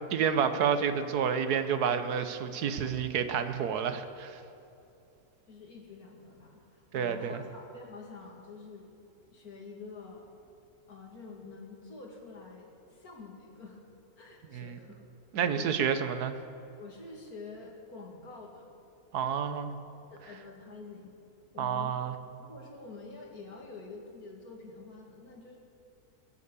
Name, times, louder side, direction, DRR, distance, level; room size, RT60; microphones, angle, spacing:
voice 1, 0.1-4.4 6.9-7.4 14.5-14.8 15.3-16.3 19.1-19.7 21.6-22.1, right 7 dB, 90° right, 10 dB, 1.5 m, -29 dB
voice 2, 5.5-8.9 9.3-10.3 10.9-13.8 14.2-15.1 15.4-15.8 16.8-18.7 20.1-21.1 21.5-22.0 22.4-25.6, left 4 dB, 70° left, 0 dB, 2.7 m, -47 dB
23.0 x 8.3 x 6.8 m, 2.8 s
omnidirectional pair, 1.6 m